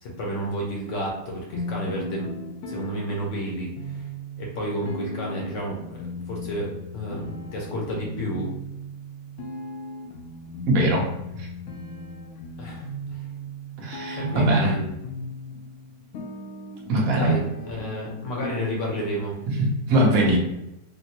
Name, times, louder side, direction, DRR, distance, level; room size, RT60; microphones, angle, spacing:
voice 1, 0.0-2.3 2.7-4.1 4.4-8.5 12.6-13.2 14.1-14.9 17.1-19.4, equal, 55° left, -2 dB, 1.0 m, -31 dB
sound 1, 1.5-19.5, left 1 dB, 80° left, 0.6 m, -38 dB
voice 2, 10.7-11.1 11.3-11.5 13.8-14.7 16.9-17.4 19.5-20.4, right 1 dB, 60° right, -2 dB, 1.2 m, -21 dB
4.1 x 2.1 x 2.8 m, 0.87 s
omnidirectional pair, 1.9 m